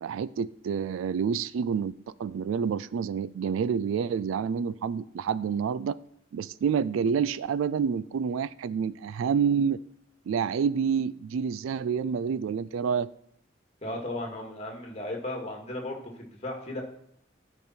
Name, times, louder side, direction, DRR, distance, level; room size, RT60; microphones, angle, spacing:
voice 1, 0.0-1.9 2.2-6.0 6.3-9.8 10.3-13.1, right 6 dB, 80° right, 0.3 m, -28 dB
voice 2, 13.8-16.8, left 1 dB, 30° left, 1.9 m, -35 dB
12.0 x 5.3 x 4.4 m
head